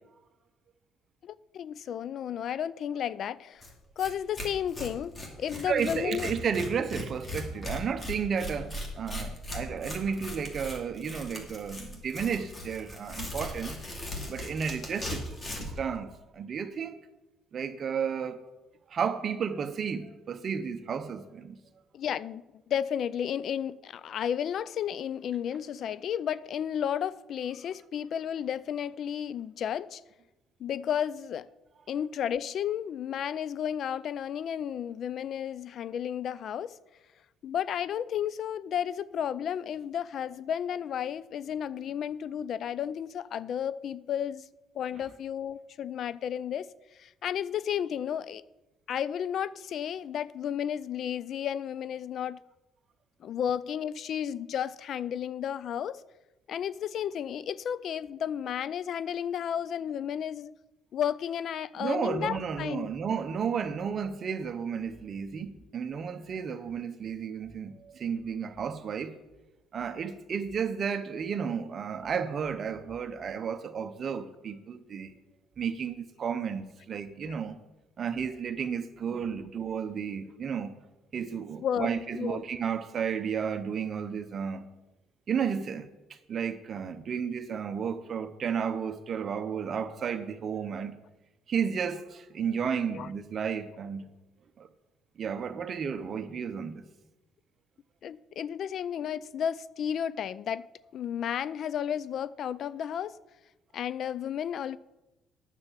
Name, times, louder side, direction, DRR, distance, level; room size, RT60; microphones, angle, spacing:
voice 1, 1.2-3.7 4.0-6.3 21.9-30.0 30.6-31.5 31.9-36.8 37.4-44.5 44.7-48.4 48.9-52.4 53.2-56.0 56.5-60.5 60.9-62.9 77.2-77.3 81.6-82.4 92.9-93.1 98.0-100.7 100.9-103.2 103.7-104.8, left 9 dB, 55° left, 0.3 m, -33 dB
Tearing, 3.6-3.7 4.0-4.1 4.3-15.8, left 1 dB, 25° left, 2.5 m, -38 dB
voice 2, 5.7-13.8 14.3-17.0 17.5-18.4 18.9-21.6 61.8-69.2 69.7-75.1 75.6-77.6 78.0-80.7 81.1-84.7 85.3-85.9 86.3-91.0 91.5-94.1 94.6-94.7 95.2-96.8, right 7 dB, 45° right, 0.9 m, -32 dB
9.6 x 6.8 x 7.4 m
cardioid pair, 115°, 0 cm